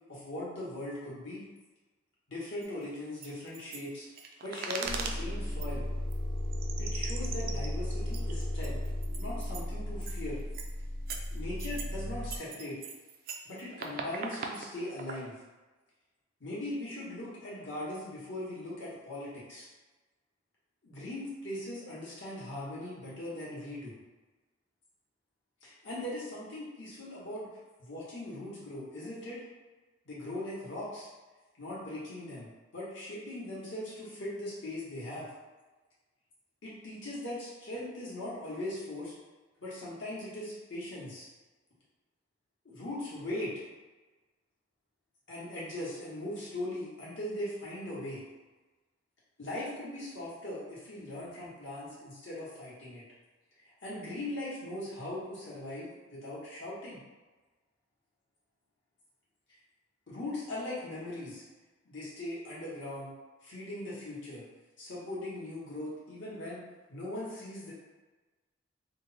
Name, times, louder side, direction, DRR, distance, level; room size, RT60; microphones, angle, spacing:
voice 1, 0.1-1.4 2.3-4.0 4.4-5.9 6.8-8.8 9.2-10.4 11.3-12.8 13.4-15.3 16.4-19.7 20.8-23.9 25.6-27.5 27.8-29.4 30.0-31.1 31.6-35.3 36.6-39.1 39.6-41.3 42.6-43.6 45.3-48.2 49.4-53.0 53.8-57.0 60.1-61.4 61.8-63.1 63.4-64.4 64.8-66.6 66.9-67.7, left 1 dB, 65° left, -8 dB, 1.3 m, -40 dB
sound 1, 2.6-2.7 3.2-5.2 5.6-5.7 6.1-6.2 6.5-9.6 10.0-10.2 10.5-10.7 11.1-11.9 12.3-15.2, right 5 dB, 45° right, 0.3 m, -40 dB
sound 2, 4.8-12.4, equal, 40° left, 0.6 m, -35 dB
3.3 x 2.1 x 4.1 m, 1.2 s
head